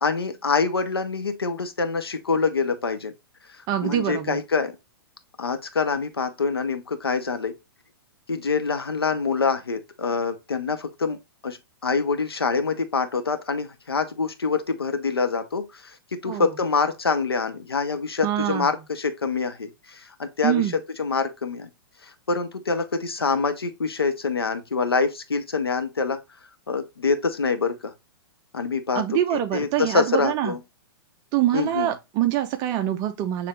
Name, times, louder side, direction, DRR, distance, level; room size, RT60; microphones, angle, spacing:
voice 1, 0.0-3.1 3.8-4.7 5.4-7.5 8.3-11.2 11.4-16.0 16.2-21.7 22.0-26.2 26.7-27.9 28.5-29.0 29.3-30.6 31.5-31.9, left 4 dB, 90° left, 0.7 m, -25 dB
voice 2, 3.7-4.4 16.3-16.5 18.2-18.7 20.4-20.8 28.9-30.6 31.3-33.5, right 12 dB, 30° right, 0.5 m, -24 dB
6.6 x 3.4 x 2.3 m
hypercardioid pair, 115°, 12 cm